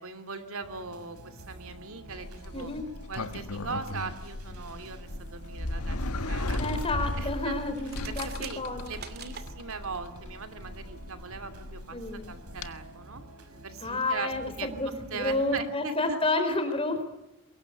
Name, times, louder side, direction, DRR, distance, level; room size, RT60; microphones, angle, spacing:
voice 1, 0.0-2.7 3.1-6.0 6.3-6.6 7.2-7.6 8.1-13.2 13.6-14.3 14.6-14.7 15.1-16.2, right 4 dB, 70° right, 8 dB, 2.8 m, -39 dB
sound 1, 0.6-15.5, right 1 dB, 85° right, 5.5 m, -49 dB
Sliding door, 2.1-12.7, left 1 dB, 85° left, 1.5 m, -36 dB
voice 2, 2.5-2.8 6.6-8.9 11.9-12.2 13.8-17.0, left 2 dB, 25° left, 7 dB, 4.7 m, -30 dB
sound 2, 7.8-9.5, right 7 dB, 45° right, 2.7 m, -43 dB
24.0 x 22.0 x 8.2 m, 0.91 s
head